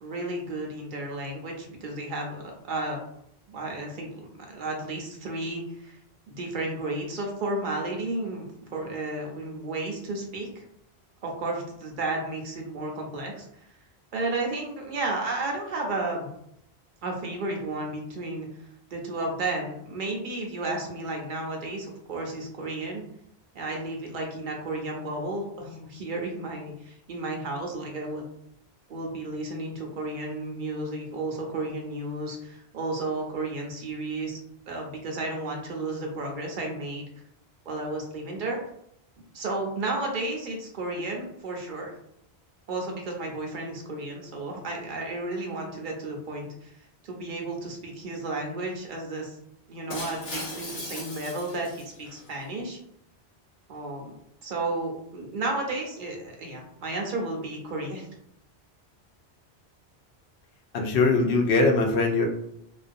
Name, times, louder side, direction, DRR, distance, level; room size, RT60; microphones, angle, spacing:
voice 1, 0.0-3.0 3.5-6.0 6.3-10.6 11.2-13.7 14.1-16.3 17.0-18.5 18.9-23.0 23.5-28.2 28.9-34.4 34.7-37.0 37.7-38.6 39.3-41.9 42.7-46.7 47.0-49.4 49.7-52.8 53.7-54.1 54.4-58.1, right 2 dB, 55° right, 1 dB, 0.7 m, -33 dB
Shatter, 49.9-52.3, left 2 dB, 50° left, 0.9 m, -38 dB
voice 2, 60.7-62.3, left 3 dB, 90° left, 2 dB, 0.8 m, -21 dB
2.4 x 2.2 x 2.5 m, 0.75 s
omnidirectional pair, 1.1 m